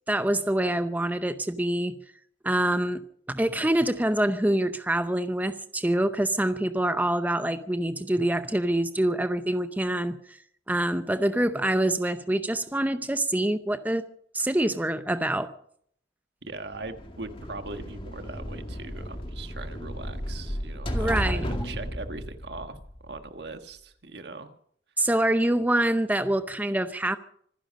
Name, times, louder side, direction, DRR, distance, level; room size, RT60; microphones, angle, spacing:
voice 1, 0.1-2.0 2.4-3.0 3.3-10.4 10.7-14.1 14.3-15.5 20.9-21.5 25.0-27.2, right 1 dB, 10° right, 10 dB, 0.6 m, -25 dB
voice 2, 16.4-24.5 25.0-25.1, right 3 dB, 65° right, 8 dB, 1.5 m, -40 dB
sound 1, 16.7-23.5, equal, 30° left, 2.1 m, -34 dB
25.5 x 10.5 x 5.2 m, 0.63 s
head